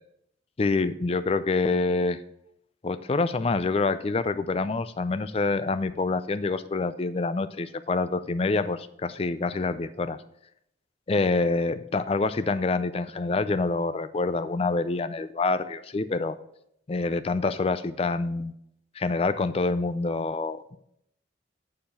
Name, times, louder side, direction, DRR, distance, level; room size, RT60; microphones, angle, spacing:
voice 1, 0.6-2.2 2.8-10.2 11.1-16.4 16.9-18.5 18.9-20.8, left 3 dB, 30° left, 12 dB, 0.4 m, -26 dB
7.4 x 6.7 x 4.3 m, 0.75 s
head